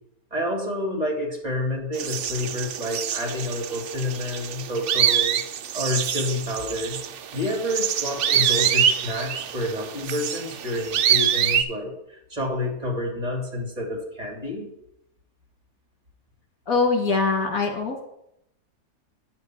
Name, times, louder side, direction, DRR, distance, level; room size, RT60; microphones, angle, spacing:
voice 1, 0.3-5.4 5.7-7.0 7.3-14.7, left 1 dB, 25° right, -1 dB, 2.8 m, -29 dB
sound 1, 1.9-11.6, right 9 dB, 65° right, 0.9 m, -25 dB
voice 2, 16.7-18.0, left 4 dB, 75° left, 2 dB, 2.1 m, -23 dB
9.6 x 4.5 x 7.7 m, 0.79 s
omnidirectional pair, 1.5 m